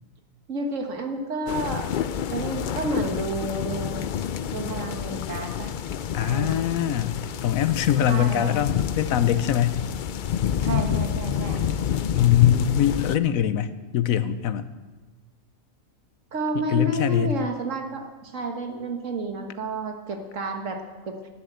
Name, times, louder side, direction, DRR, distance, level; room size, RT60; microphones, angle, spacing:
voice 1, 0.5-1.9 2.3-4.0 4.5-5.7 6.2-6.6 8.1-8.6 10.5-11.6 16.3-21.2, right 2 dB, 65° right, 4 dB, 1.8 m, -30 dB
sound 1, 1.5-13.2, left 9 dB, 70° left, 0.4 m, -28 dB
voice 2, 6.1-9.8 12.1-14.7 16.5-17.3, left 10 dB, 90° left, 13 dB, 1.2 m, -23 dB
12.0 x 10.0 x 7.9 m, 1.3 s
omnidirectional pair, 1.4 m